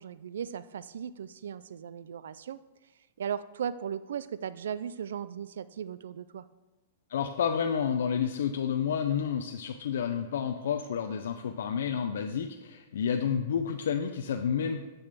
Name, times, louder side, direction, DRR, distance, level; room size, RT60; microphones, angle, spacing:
voice 1, 0.0-2.6 3.2-6.5, right 8 dB, 75° right, 15 dB, 0.3 m, -37 dB
voice 2, 7.1-14.9, left 7 dB, 65° left, 5 dB, 0.5 m, -30 dB
6.9 x 6.9 x 6.6 m, 1.1 s
supercardioid pair, 180°, 0 cm